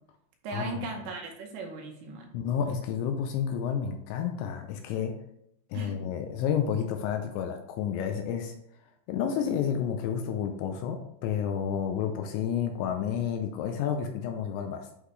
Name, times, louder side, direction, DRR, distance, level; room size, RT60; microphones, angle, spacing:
voice 1, 0.4-2.3 5.7-6.0, right 3 dB, 75° right, 2 dB, 2.9 m, -37 dB
voice 2, 2.3-5.2 5.7-8.5 9.1-14.9, left 8 dB, 80° left, 5 dB, 2.7 m, -30 dB
11.0 x 4.0 x 3.2 m, 0.74 s
omnidirectional pair, 5.5 m